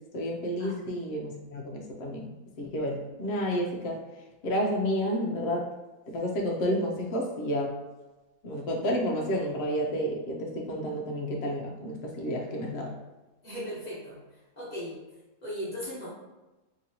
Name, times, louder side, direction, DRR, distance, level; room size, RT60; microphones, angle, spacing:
voice 1, 0.1-2.3 2.6-4.0 4.4-5.7 6.1-7.7 8.4-12.9, equal, 60° left, 0 dB, 0.6 m, -30 dB
voice 2, 13.4-14.2 14.6-15.0 15.4-16.1, equal, 30° left, -8 dB, 1.0 m, -37 dB
3.0 x 2.7 x 2.8 m, 1.1 s
omnidirectional pair, 1.6 m